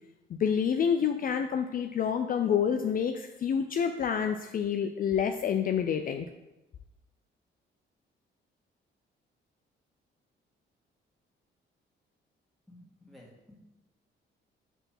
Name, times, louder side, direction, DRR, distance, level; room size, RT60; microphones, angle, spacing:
voice 1, 0.3-6.3, left 7 dB, 45° left, 6 dB, 0.4 m, -28 dB
voice 2, 12.7-13.6, left 1 dB, ahead, -4 dB, 2.0 m, -54 dB
6.0 x 3.4 x 5.9 m, 0.97 s
cardioid pair, 90°, 20 cm